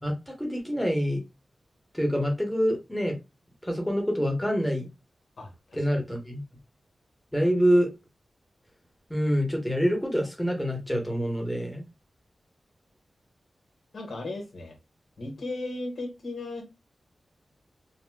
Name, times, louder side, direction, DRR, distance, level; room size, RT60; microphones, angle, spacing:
voice 1, 0.0-1.2 1.9-3.2 3.6-4.9 5.8-6.4 7.3-7.9 9.1-11.8, equal, 5° left, 1 dB, 1.0 m, -26 dB
voice 2, 5.4-6.0 13.9-14.8 15.2-16.6, left 2 dB, 75° left, 2 dB, 1.3 m, -36 dB
4.1 x 2.1 x 2.3 m, 0.26 s
cardioid pair, 55°, 0 cm